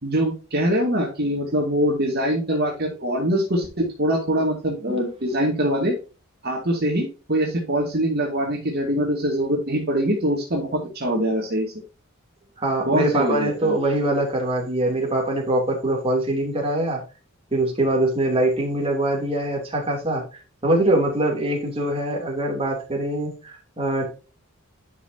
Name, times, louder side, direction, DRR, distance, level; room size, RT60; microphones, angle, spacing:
voice 1, 0.0-6.0 6.4-11.7 12.9-13.8, equal, 45° right, -1 dB, 2.2 m, -23 dB
voice 2, 12.6-17.0 17.5-24.0, right 1 dB, 25° right, 0 dB, 2.8 m, -23 dB
11.0 x 5.8 x 2.7 m, 0.34 s
head